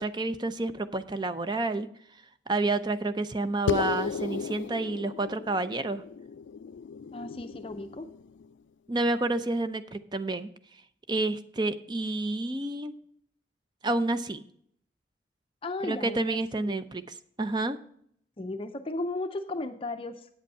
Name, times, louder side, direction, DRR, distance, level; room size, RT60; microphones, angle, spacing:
voice 1, 0.0-1.9 2.5-6.0 8.9-10.5 11.1-12.9 13.8-14.4 15.8-17.0 17.4-17.8, right 2 dB, 25° right, 11 dB, 0.5 m, -29 dB
sound 1, 3.7-8.5, left 6 dB, 85° left, 0.3 m, -35 dB
voice 2, 7.1-8.1 15.6-16.8 18.4-20.3, left 2 dB, 30° left, 8 dB, 0.5 m, -35 dB
8.5 x 7.9 x 5.5 m, 0.66 s
head